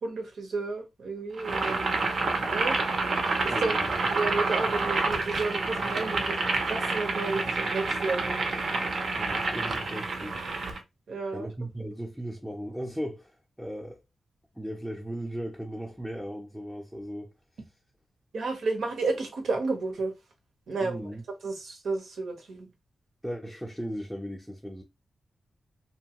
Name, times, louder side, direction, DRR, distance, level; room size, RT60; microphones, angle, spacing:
voice 1, 0.0-2.0 2.5-2.8 3.4-3.8 4.1-8.4 9.3-9.4 11.1-11.5 18.3-20.1 20.7-21.1 21.4-22.7, right 3 dB, 80° right, 0.9 m, -32 dB
Boiling, 1.4-10.8, right 3 dB, 60° right, 0.6 m, -28 dB
voice 2, 3.5-3.9 9.2-10.4 11.3-14.0 14.5-17.3 20.8-21.2 23.2-24.8, equal, 5° right, 0.5 m, -37 dB
2.8 x 2.3 x 2.9 m
wide cardioid pair, 120°, 0 cm